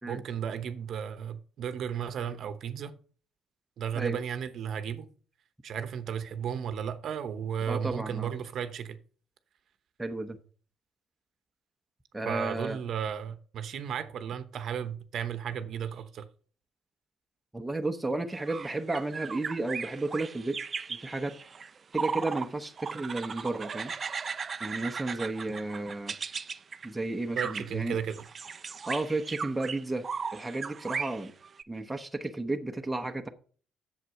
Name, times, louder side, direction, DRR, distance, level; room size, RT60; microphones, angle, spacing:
voice 1, 0.0-2.9 3.8-5.1 5.6-9.0 12.2-16.3 27.3-28.2, right 8 dB, 55° right, 0.9 m, -34 dB
voice 2, 7.7-8.3 10.0-10.4 12.1-12.8 17.5-20.6 20.9-21.4 21.9-23.9 24.6-26.2 26.8-28.0 28.9-31.3 31.7-33.3, right 2 dB, 10° right, 0.8 m, -33 dB
sound 1, 18.3-22.5 22.8-26.9 27.4-27.7 28.1-31.6, right 5 dB, 30° right, 0.4 m, -37 dB
8.1 x 7.3 x 5.7 m
cardioid pair, 150°, 0 cm